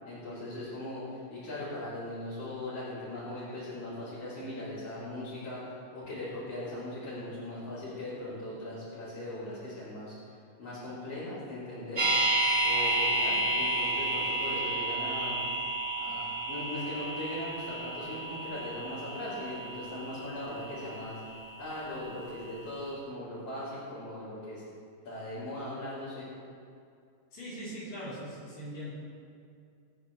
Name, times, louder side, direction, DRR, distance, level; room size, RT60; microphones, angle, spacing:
voice 1, 0.0-5.6 5.9-12.1 12.6-15.4 16.0-21.2 21.6-24.6 25.0-26.3, left 1 dB, 45° left, -12 dB, 4.7 m, -39 dB
sound 1, 11.9-22.0 22.3-22.4, right 1 dB, 35° right, 3.0 m, -31 dB
voice 2, 27.3-28.9, equal, 75° left, -11 dB, 5.8 m, -40 dB
24.0 x 9.4 x 3.4 m, 2.4 s
omnidirectional pair, 3.9 m